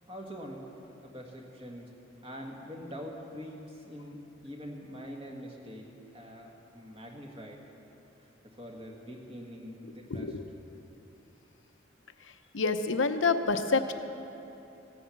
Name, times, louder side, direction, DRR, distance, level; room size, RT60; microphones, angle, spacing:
voice 1, 0.1-0.6 1.0-1.9 2.2-5.9 6.1-7.6 8.4-10.3, equal, 30° right, 0 dB, 1.7 m, -44 dB
voice 2, 9.8-10.4 12.2-13.9, left 4 dB, 75° left, 8 dB, 0.8 m, -28 dB
16.0 x 9.2 x 7.1 m, 2.9 s
head